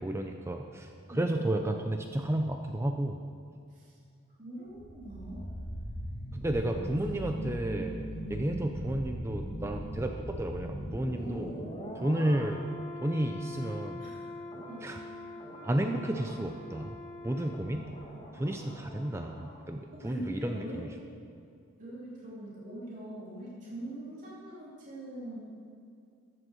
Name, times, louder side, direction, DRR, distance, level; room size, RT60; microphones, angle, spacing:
voice 1, 0.0-3.2 6.3-11.6 12.0-12.7 13.0-14.0 14.8-15.0 15.6-17.0 17.2-17.9 18.3-20.9, right 1 dB, 10° right, 4 dB, 0.4 m, -32 dB
voice 2, 1.1-1.5 3.7-4.0 4.4-5.5 6.7-6.8 7.5-7.6 8.3-8.5 11.1-11.8 14.0-14.3 14.6-14.9 19.9-20.9 21.8-25.4, right 1 dB, 35° right, -7 dB, 2.9 m, -43 dB
sound 1, 4.7-19.7 19.9-20.1, equal, 30° left, 1.8 m, -40 dB
13.5 x 7.7 x 6.2 m, 2.4 s
head